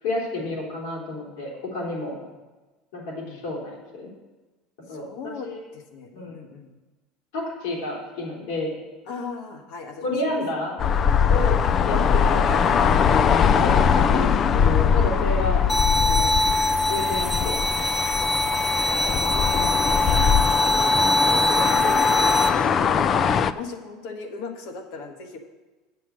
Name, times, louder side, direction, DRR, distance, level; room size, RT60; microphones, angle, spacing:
voice 1, 0.0-2.1 2.9-4.1 4.9-5.1 5.4-5.6 6.1-6.4 7.3-8.7 10.0-10.7 11.3-11.6 11.8-16.3 16.9-17.6 19.5-19.8, left 2 dB, 85° left, -3 dB, 3.3 m, -30 dB
voice 2, 3.2-3.6 4.9-6.7 9.1-10.4 11.3-11.5 15.3-15.7 18.3-18.5 19.2-20.0 20.5-25.4, left 4 dB, 65° left, 5 dB, 1.3 m, -38 dB
sound 1, 10.8-23.5, left 7 dB, 30° left, 0.3 m, -21 dB
sound 2, 15.7-22.5, left 1 dB, 10° left, 0.7 m, -23 dB
8.0 x 6.9 x 6.3 m, 1.2 s
cardioid pair, 155°, 0 cm